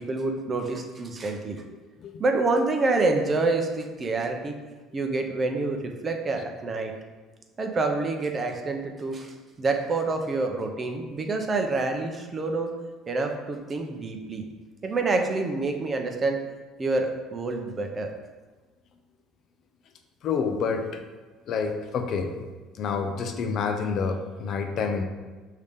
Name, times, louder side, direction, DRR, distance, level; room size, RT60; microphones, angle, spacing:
voice 1, 0.0-1.6 2.2-4.5 4.9-6.9 7.6-12.7 13.1-14.5 14.8-16.4 16.8-18.1, right 3 dB, 30° right, 4 dB, 0.5 m, -27 dB
voice 2, 20.2-21.0 21.5-22.3 22.7-25.0, left 5 dB, 55° left, 6 dB, 0.4 m, -28 dB
4.9 x 2.8 x 3.5 m, 1.3 s
supercardioid pair, 100°, 0 cm